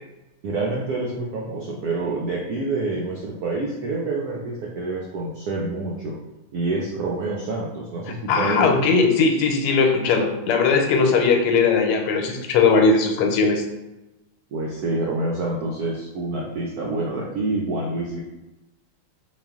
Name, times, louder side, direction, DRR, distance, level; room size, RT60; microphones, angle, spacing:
voice 1, 0.4-6.2 6.5-8.8 14.5-18.2, right 2 dB, 90° right, -2 dB, 0.8 m, -27 dB
voice 2, 8.3-13.6, left 4 dB, 90° left, 3 dB, 1.6 m, -19 dB
4.4 x 2.5 x 3.5 m, 1.0 s
omnidirectional pair, 2.4 m